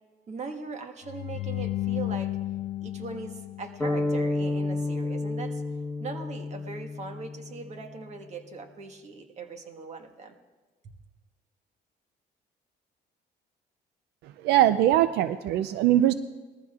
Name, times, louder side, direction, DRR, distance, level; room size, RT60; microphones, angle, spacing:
voice 1, 0.3-2.4 2.8-5.6 6.0-10.3 10.8-10.9, right 4 dB, 40° right, 6 dB, 1.5 m, -40 dB
sound 1, 1.0-4.2, left 14 dB, 70° left, 0.5 m, -33 dB
sound 2, 3.8-7.7, left 2 dB, 5° left, 1.1 m, -30 dB
voice 2, 14.4-16.1, right 12 dB, 85° right, 13 dB, 0.4 m, -21 dB
20.5 x 14.5 x 2.4 m, 1.4 s
cardioid pair, 110°, 17 cm